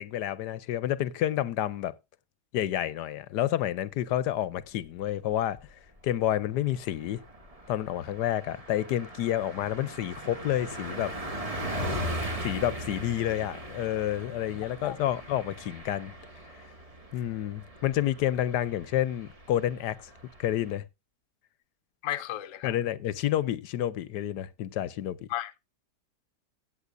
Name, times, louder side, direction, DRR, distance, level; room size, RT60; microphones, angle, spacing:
voice 1, 0.0-1.9 2.5-5.6 6.0-7.2 7.7-11.2 12.4-16.1 17.1-20.0 20.4-20.8 22.6-25.3, left 12 dB, 80° left, 1.3 m, -29 dB
Car passing by, 5.1-5.7 6.1-6.2 6.5-20.8, equal, 20° right, 1.7 m, -39 dB
voice 2, 22.0-22.7 25.3-25.7, left 13 dB, 60° left, 1.0 m, -34 dB
16.5 x 8.0 x 2.5 m
omnidirectional pair, 1.8 m